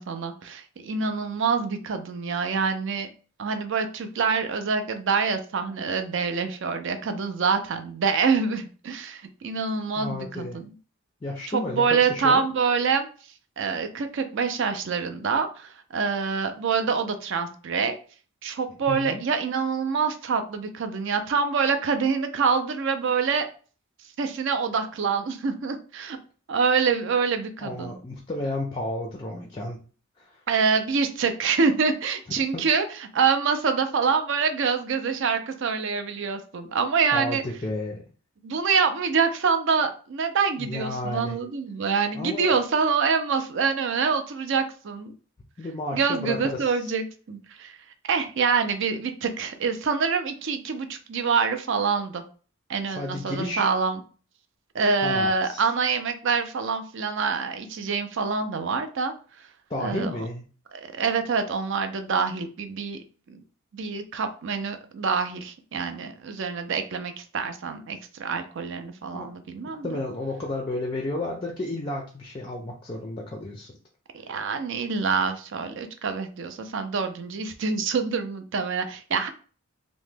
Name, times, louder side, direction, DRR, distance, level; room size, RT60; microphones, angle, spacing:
voice 1, 0.0-3.1 3.4-10.7 11.5-13.1 13.6-18.0 18.4-23.5 24.2-26.2 26.5-27.9 30.5-37.4 38.4-45.1 45.9-47.8 48.1-52.2 52.7-54.0 54.7-59.1 59.8-60.2 60.7-63.0 63.3-63.4 63.7-70.0 74.1-79.3, right 5 dB, 55° right, 8 dB, 0.4 m, -26 dB
voice 2, 10.0-10.6 11.2-12.4 18.9-19.2 27.6-29.8 30.2-30.4 32.5-32.7 37.1-38.0 40.6-41.4 42.1-42.6 45.6-46.9 53.0-53.7 55.0-55.6 59.7-60.4 69.1-69.3 69.8-73.7, left 2 dB, 20° left, 1 dB, 0.4 m, -32 dB
2.9 x 2.1 x 3.3 m, 0.39 s
head